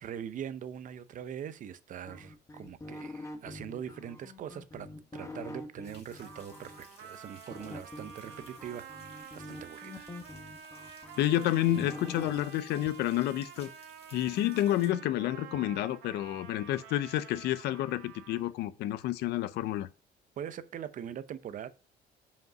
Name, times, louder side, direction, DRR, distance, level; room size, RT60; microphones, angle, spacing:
voice 1, 0.0-4.9 5.1-8.9 9.3-10.1 20.4-21.7, right 9 dB, 50° right, 0.6 m, -42 dB
sound 1, 2.1-6.8 7.5-12.4, left 1 dB, 15° left, 1.1 m, -45 dB
sound 2, 5.8-14.9, left 4 dB, 35° left, 2.3 m, -58 dB
Trumpet, 6.2-18.6, right 8 dB, 85° right, 1.2 m, -49 dB
voice 2, 11.2-13.7 14.1-19.9, left 13 dB, 75° left, 0.5 m, -29 dB
5.3 x 5.2 x 5.9 m
cardioid pair, 110°, 17 cm